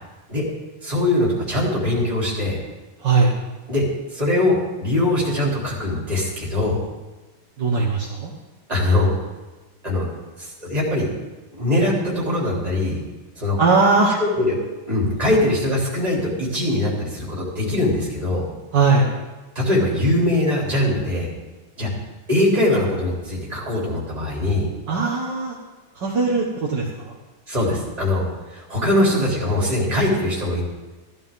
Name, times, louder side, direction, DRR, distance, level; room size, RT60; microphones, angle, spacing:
voice 1, 0.8-2.6 3.7-3.8 4.1-6.8 8.7-9.1 9.8-10.1 10.4-11.1 11.5-13.0 13.3-13.6 14.2-14.6 14.9-18.4 19.5-21.3 21.8-21.9 22.3-24.7 27.5-28.2 28.5-30.6, left 1 dB, 15° right, -4 dB, 3.4 m, -21 dB
voice 2, 3.0-3.3 7.6-8.3 13.6-14.2 18.7-19.1 24.9-25.6 25.9-27.2, right 4 dB, 55° right, -4 dB, 2.0 m, -19 dB
15.0 x 12.5 x 3.7 m, 1.2 s
omnidirectional pair, 2.4 m